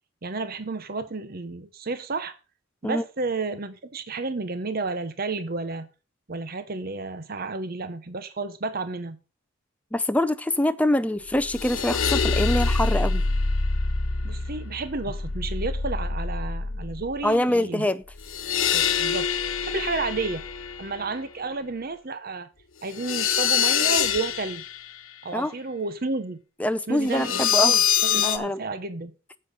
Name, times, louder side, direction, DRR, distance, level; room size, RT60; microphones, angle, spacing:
voice 1, 0.2-2.3 2.8-5.9 6.3-9.2 14.2-17.9 18.7-20.4 20.8-22.5 22.8-24.6 25.2-26.4 26.9-29.1, right 3 dB, 45° right, 0.8 m, -31 dB
voice 2, 9.9-13.2 17.2-18.0 25.3-25.5 26.6-27.8 28.2-28.6, left 1 dB, 5° left, 0.5 m, -24 dB
sound 1, 11.3-17.2 18.1-21.0 22.9-24.9 27.1-28.4, left 6 dB, 75° left, 1.1 m, -25 dB
8.8 x 7.8 x 5.4 m
head